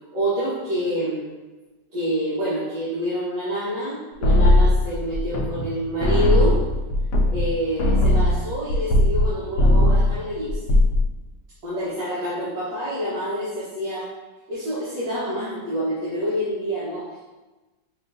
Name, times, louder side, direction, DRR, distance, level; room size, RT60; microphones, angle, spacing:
voice 1, 0.1-1.2 1.9-6.6 7.3-10.6 11.6-14.1 14.5-17.2, equal, 65° right, -11 dB, 1.8 m, -27 dB
sound 1, 4.2-5.7 6.0-9.3 9.6-10.1 10.5-11.0, left 1 dB, 75° left, 1.2 m, -18 dB
6.1 x 3.1 x 2.6 m, 1.2 s
omnidirectional pair, 2.0 m